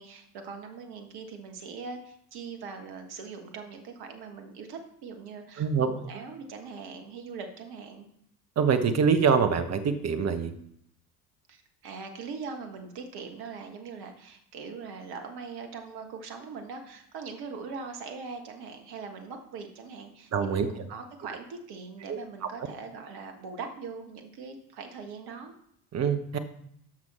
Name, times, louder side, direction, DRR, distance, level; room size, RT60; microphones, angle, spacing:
voice 1, 0.0-8.1 11.5-25.5, right 5 dB, 50° right, 5 dB, 1.6 m, -41 dB
voice 2, 5.6-5.9 8.6-10.5 20.3-20.7 22.1-22.5 25.9-26.4, right 6 dB, 35° right, 9 dB, 1.1 m, -25 dB
10.5 x 6.2 x 4.3 m, 0.71 s
figure-of-eight pair, 60°, 48 cm